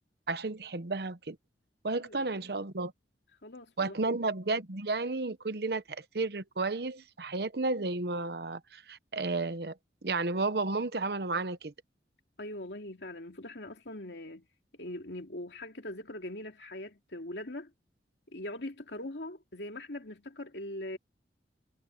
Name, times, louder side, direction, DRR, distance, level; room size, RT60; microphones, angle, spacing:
voice 1, 0.3-1.4 1.8-2.9 3.8-9.8 10.0-11.7, right 3 dB, 65° right, 0.9 m, -32 dB
voice 2, 3.4-4.2 12.4-14.5 14.8-17.7 18.3-21.0, left 1 dB, 80° left, 2.5 m, -41 dB
head